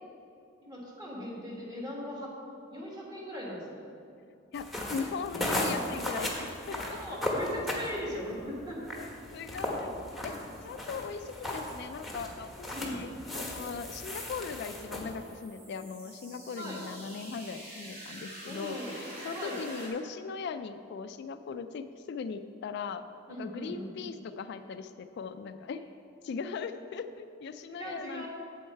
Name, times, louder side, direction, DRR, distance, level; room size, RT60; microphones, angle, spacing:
voice 1, 0.6-2.3 2.7-3.8 6.9-8.9 12.7-13.0 16.6-16.8 18.5-19.0 19.3-19.6 23.3-24.0 27.7-28.3, equal, 20° right, -4 dB, 1.8 m, -39 dB
voice 2, 4.5-7.2 9.0-9.1 9.3-9.9 10.2-25.8 26.2-28.3, left 5 dB, 55° left, 10 dB, 0.3 m, -39 dB
sound 1, 4.5-15.3, left 1 dB, ahead, 1.1 m, -36 dB
sound 2, 14.4-19.9, right 1 dB, 45° right, 2.2 m, -47 dB
7.9 x 7.8 x 4.5 m, 2.6 s
head